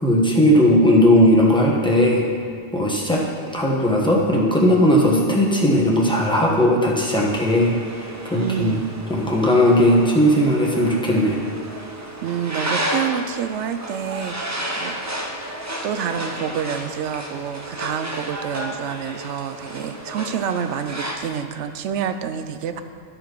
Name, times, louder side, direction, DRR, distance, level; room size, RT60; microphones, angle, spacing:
voice 1, 0.0-2.3 2.7-3.2 3.5-8.8 9.1-11.4, equal, 5° left, -4 dB, 1.2 m, -17 dB
sound 1, 7.3-21.2, right 1 dB, 20° right, 0.6 m, -32 dB
voice 2, 8.3-8.9 12.2-15.2 15.8-22.8, right 8 dB, 85° right, 9 dB, 0.9 m, -28 dB
12.5 x 5.1 x 4.6 m, 2.4 s
omnidirectional pair, 1.2 m